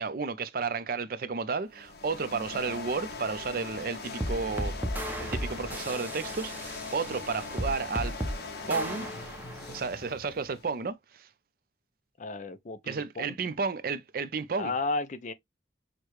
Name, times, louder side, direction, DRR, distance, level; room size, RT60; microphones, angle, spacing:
voice 1, 0.0-4.7 5.2-8.1 8.7-9.1 9.7-11.3 12.9-14.7, right 4 dB, 50° right, 0.4 m, -32 dB
sound 1, 1.6-10.8, left 3 dB, 60° left, 0.9 m, -41 dB
sound 2, 4.2-9.8, equal, 10° right, 0.6 m, -35 dB
voice 2, 12.2-13.3 14.6-15.3, left 3 dB, 45° left, 0.5 m, -33 dB
6.4 x 2.2 x 3.0 m
head